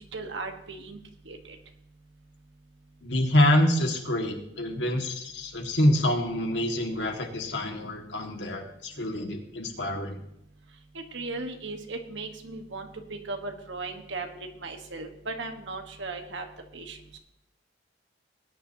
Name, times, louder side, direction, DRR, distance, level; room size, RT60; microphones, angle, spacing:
voice 1, 0.1-1.0 1.3-1.6 10.9-14.3 14.6-16.5 16.7-17.2, right 3 dB, 85° right, 5 dB, 1.5 m, -37 dB
voice 2, 3.0-10.2, left 1 dB, 70° left, 3 dB, 2.1 m, -26 dB
20.0 x 10.0 x 2.9 m, 0.77 s
head